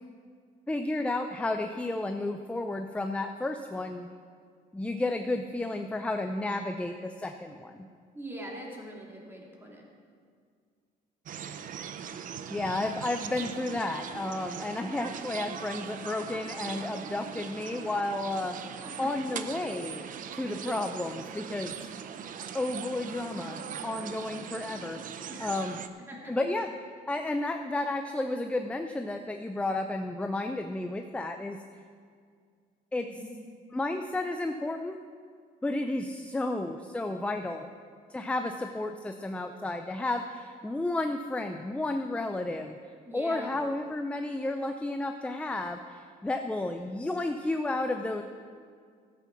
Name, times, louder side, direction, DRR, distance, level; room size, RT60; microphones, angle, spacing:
voice 1, 0.7-4.1 4.7-7.9 12.5-20.0 20.3-21.9 22.5-25.0 25.4-25.8 26.3-26.7 27.1-31.6 32.9-33.1 33.7-35.0 35.6-37.7 38.1-42.8 43.1-48.2, left 2 dB, 5° left, 6 dB, 0.5 m, -32 dB
voice 2, 8.1-9.8 18.8-19.1 25.3-25.4 26.1-26.3 33.0-33.3 43.0-43.6, right 1 dB, 15° right, -2 dB, 2.8 m, -42 dB
sound 1, 11.3-25.9, right 8 dB, 55° right, 0.7 m, -40 dB
14.0 x 8.2 x 6.1 m, 2.1 s
cardioid pair, 110°, 17 cm